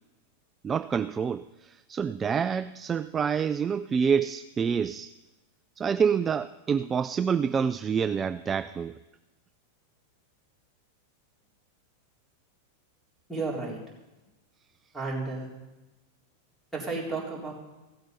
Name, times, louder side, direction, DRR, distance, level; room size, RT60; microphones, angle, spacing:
voice 1, 0.6-5.1 5.8-9.0, right 6 dB, 20° right, 0.3 m, -27 dB
voice 2, 13.3-13.8 14.9-15.5 16.7-17.5, right 3 dB, ahead, 4.0 m, -32 dB
15.5 x 7.9 x 5.4 m
hypercardioid pair, 125°, 0 cm